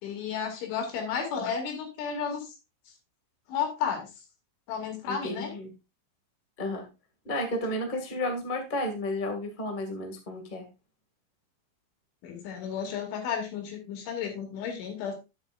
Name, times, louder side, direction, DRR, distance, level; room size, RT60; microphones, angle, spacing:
voice 1, 0.0-2.5 3.5-4.1 4.7-5.5 12.2-15.2, left 7 dB, 80° left, 3 dB, 4.9 m, -32 dB
voice 2, 5.0-5.7 6.6-6.8 7.2-10.6, left 1 dB, 35° left, 3 dB, 0.7 m, -32 dB
11.0 x 9.2 x 2.6 m, 0.27 s
omnidirectional pair, 5.3 m